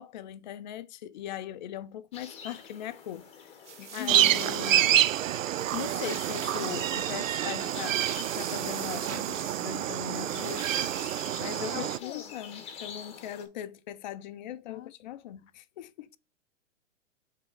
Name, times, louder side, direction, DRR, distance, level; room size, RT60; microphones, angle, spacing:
voice 1, 0.0-3.6 3.9-5.0 5.7-11.1 11.4-16.1, left 11 dB, 40° left, 0.5 m, -40 dB
sound 1, 2.1-13.5, left 6 dB, 15° left, 1.2 m, -46 dB
sound 2, 3.6-11.8, right 8 dB, 65° right, 1.2 m, -44 dB
voice 2, 3.8-4.3 11.7-12.2 14.7-14.9, left 12 dB, 80° left, 0.6 m, -41 dB
sound 3, 4.1-12.0, right 12 dB, 85° right, 0.5 m, -28 dB
7.2 x 3.6 x 3.6 m
hypercardioid pair, 150°, 38 cm